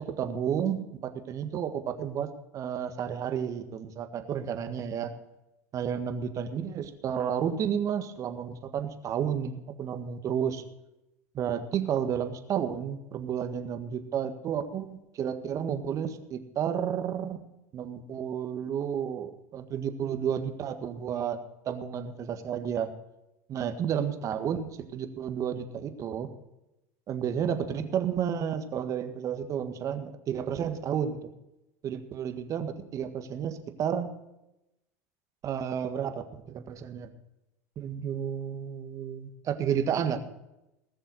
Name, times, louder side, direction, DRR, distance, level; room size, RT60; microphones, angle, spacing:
voice 1, 0.0-5.1 5.7-10.6 11.3-17.4 17.7-22.9 23.5-26.3 27.1-31.3 31.8-34.1 35.4-37.1 37.8-40.2, right 8 dB, 40° right, 8 dB, 1.7 m, -31 dB
19.5 x 6.7 x 6.4 m, 0.90 s
hypercardioid pair, 85°, 8 cm